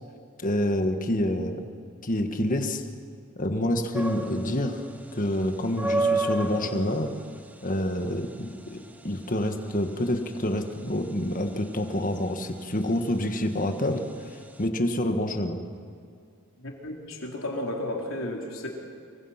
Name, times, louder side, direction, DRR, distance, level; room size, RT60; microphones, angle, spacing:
voice 1, 0.4-1.6 2.0-2.8 3.3-4.8 5.1-7.1 7.6-8.8 9.0-14.0 14.3-15.6, left 1 dB, 35° left, 6 dB, 1.6 m, -27 dB
sound 1, 3.9-14.7, right 2 dB, 5° right, 0.9 m, -33 dB
voice 2, 16.6-18.7, left 1 dB, 60° left, 0 dB, 3.9 m, -33 dB
25.0 x 24.0 x 5.9 m, 2.3 s
head